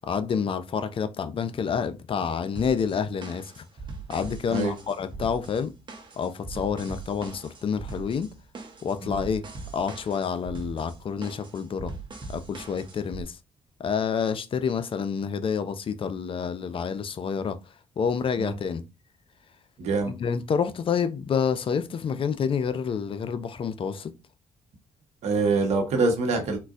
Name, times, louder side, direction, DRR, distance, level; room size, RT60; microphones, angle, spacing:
voice 1, 0.1-3.6 4.1-5.7 6.2-8.3 8.8-9.4 9.7-11.9 12.3-13.4 13.8-17.6 18.0-18.8 20.1-24.1, left 6 dB, 50° left, 0.5 m, -28 dB
sound 1, 2.6-13.2, right 4 dB, 40° right, 1.0 m, -41 dB
voice 2, 19.8-20.1 25.2-26.6, right 3 dB, 70° right, 1.1 m, -25 dB
3.8 x 2.5 x 2.4 m
supercardioid pair, 65°, 12 cm